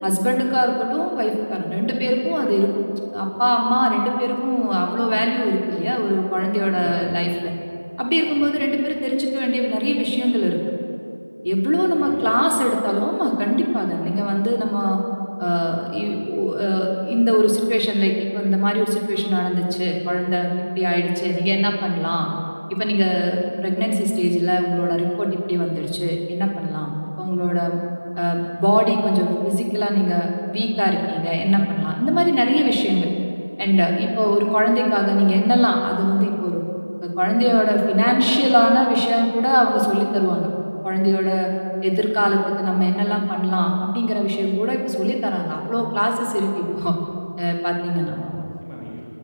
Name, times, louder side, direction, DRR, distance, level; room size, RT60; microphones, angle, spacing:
voice 1, 0.0-2.7 3.1-7.5 8.0-10.6 11.4-15.0 15.4-22.3 22.8-26.9 27.2-27.8 28.2-33.1 33.6-36.6 37.0-40.5 40.8-41.5 41.8-47.0 47.4-48.1, equal, 90° left, 0 dB, 5.3 m, -20 dB
voice 2, 6.7-7.4 8.3-8.6 11.9-12.3 48.0-49.0, equal, 30° left, -6 dB, 3.3 m, -37 dB
29.5 x 20.5 x 6.5 m, 2.7 s
figure-of-eight pair, 180°, 0 cm